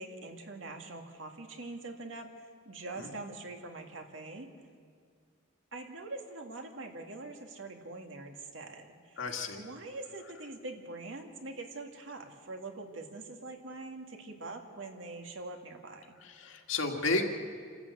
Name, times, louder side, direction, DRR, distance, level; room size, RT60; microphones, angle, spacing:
voice 1, 0.0-4.5 5.7-9.2 9.6-16.1, right 2 dB, 70° right, 3 dB, 2.2 m, -44 dB
voice 2, 9.2-9.6 16.2-17.2, left 3 dB, 80° left, 2 dB, 2.1 m, -32 dB
27.5 x 13.0 x 8.4 m, 2.1 s
head